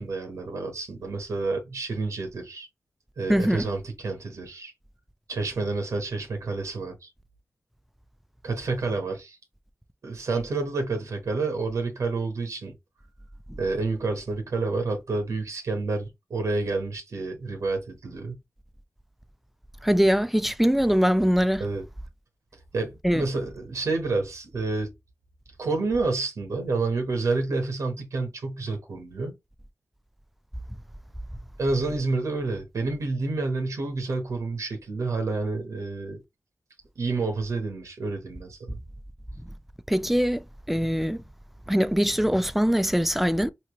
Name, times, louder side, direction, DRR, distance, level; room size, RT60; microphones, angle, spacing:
voice 1, 0.0-2.7 3.2-4.7 5.3-6.9 8.4-9.4 10.0-12.7 13.6-18.4 21.6-21.8 22.7-24.9 25.6-29.3 31.6-36.2 37.0-38.8, right 3 dB, 90° right, 0.9 m, -29 dB
voice 2, 3.3-3.7 19.8-21.6 23.0-23.2 39.9-41.2 41.7-43.5, equal, 5° right, 0.4 m, -22 dB
3.2 x 2.9 x 2.9 m
cardioid pair, 60°, 5 cm